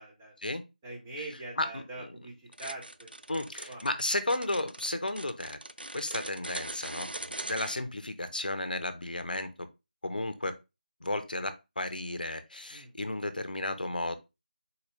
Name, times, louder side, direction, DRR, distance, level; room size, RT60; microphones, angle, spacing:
voice 1, 0.0-0.3 0.8-2.3 2.6-3.8 12.7-12.9, right 2 dB, 10° right, -4 dB, 0.9 m, -43 dB
voice 2, 1.6-2.1 3.3-5.6 5.9-7.1 7.4-9.7 10.0-10.6 11.0-14.2, left 2 dB, 65° left, 9 dB, 0.8 m, -33 dB
sound 1, 2.5-7.8, right 1 dB, 90° right, 0.4 m, -41 dB
4.3 x 2.8 x 3.3 m, 0.25 s
figure-of-eight pair, 165°, 5 cm